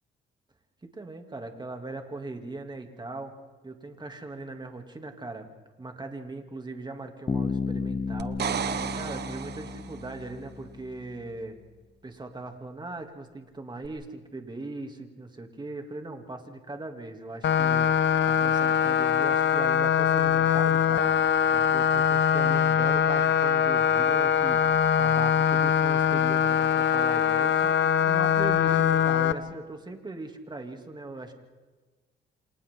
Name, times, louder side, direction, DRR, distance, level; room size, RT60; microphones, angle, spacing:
voice 1, 0.8-3.3 3.6-5.5 5.8-11.5 12.0-21.1 21.5-27.8 28.1-31.3, right 2 dB, 20° right, 4 dB, 2.9 m, -39 dB
Bass guitar, 7.3-11.0, left 4 dB, 25° left, 0.8 m, -33 dB
sound 1, 8.2-10.1 13.8-13.9, right 8 dB, 55° right, 1.2 m, -33 dB
sound 2, 17.4-29.3, left 8 dB, 65° left, 1.2 m, -22 dB
29.0 x 27.0 x 3.9 m, 1.3 s
cardioid pair, 90°, 20 cm